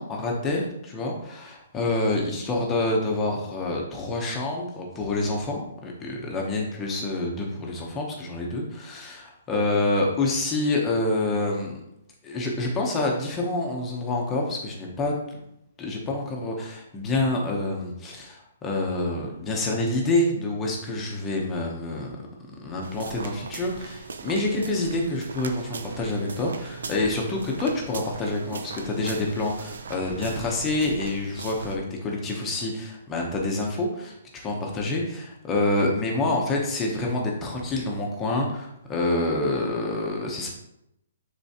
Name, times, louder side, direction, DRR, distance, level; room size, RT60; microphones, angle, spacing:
voice 1, 0.0-11.8 12.2-15.1 15.8-22.2 22.6-40.5, left 2 dB, 10° left, -1 dB, 0.8 m, -27 dB
sound 1, 22.8-31.8, right 4 dB, 80° right, 0.6 m, -39 dB
10.5 x 3.7 x 2.8 m, 0.81 s
hypercardioid pair, 175°, 0 cm